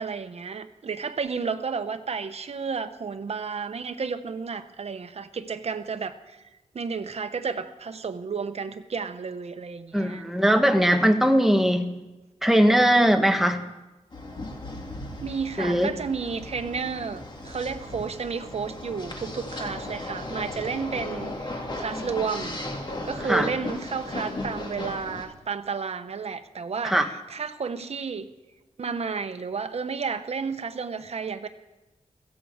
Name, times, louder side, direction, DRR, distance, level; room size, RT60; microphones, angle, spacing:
voice 1, 0.0-6.4 6.7-10.3 15.2-22.6 23.0-28.3 28.8-31.5, right 5 dB, 55° right, 8 dB, 0.9 m, -32 dB
voice 2, 9.9-11.9 12.4-13.6 15.6-15.9 23.3-23.5 26.8-27.0, equal, ahead, 5 dB, 1.1 m, -20 dB
sound 1, 14.1-25.2, left 2 dB, 35° left, 2.1 m, -36 dB
16.5 x 15.0 x 4.9 m, 1.1 s
wide cardioid pair, 145°, 13 cm